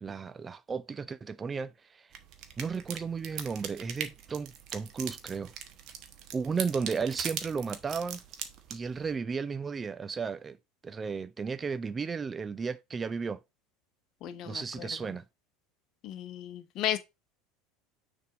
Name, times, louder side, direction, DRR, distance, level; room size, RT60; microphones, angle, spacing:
voice 1, 0.0-2.1 2.6-5.5 6.3-8.2 8.7-10.6 10.8-13.4 14.5-15.2, right 5 dB, 25° right, 0.5 m, -34 dB
sound 1, 2.1-9.1, right 8 dB, 45° right, 1.2 m, -41 dB
voice 2, 14.2-14.9 16.0-17.0, left 11 dB, 50° left, 1.0 m, -34 dB
6.5 x 3.5 x 5.0 m
figure-of-eight pair, 75°, 0 cm